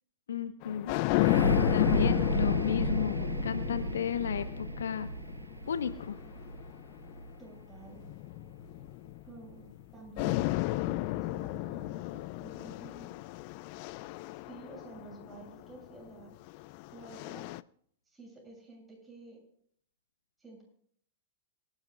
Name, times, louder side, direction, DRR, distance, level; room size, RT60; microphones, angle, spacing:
voice 1, 0.3-1.0 1.7-5.1 5.7-6.2, left 8 dB, 70° left, 10 dB, 1.0 m, -34 dB
sound 1, 0.6-7.2 8.0-9.8 10.2-15.5 16.5-17.6, left 19 dB, 50° left, 0.4 m, -33 dB
sound 2, 1.1-8.8 9.5-9.6, right 3 dB, 90° right, 1.0 m, -34 dB
voice 2, 2.3-2.6 7.4-8.0 9.2-13.1 14.3-16.4 16.9-17.5 18.1-19.4 20.4-20.6, right 3 dB, 10° right, -1 dB, 7.2 m, -50 dB
26.5 x 11.0 x 2.4 m, 0.63 s
figure-of-eight pair, 100°, 0 cm